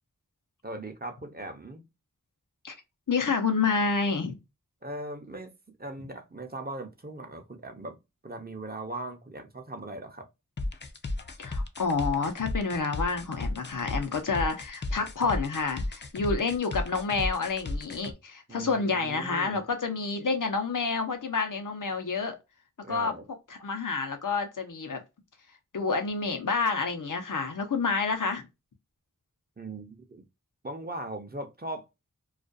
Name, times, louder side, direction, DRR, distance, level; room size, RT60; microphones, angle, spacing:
voice 1, 0.6-1.8 4.8-5.5 5.8-8.0 8.2-10.3 18.5-19.6 22.8-23.2 29.6-30.2 30.6-31.9, right 2 dB, 30° right, 0.6 m, -39 dB
voice 2, 3.1-4.4 11.4-22.4 22.9-23.1 23.5-25.0 25.7-28.4, left 4 dB, 80° left, 0.7 m, -29 dB
sound 1, 10.6-18.1, left 2 dB, 35° left, 0.5 m, -34 dB
2.4 x 2.2 x 2.5 m
wide cardioid pair, 45°, 31 cm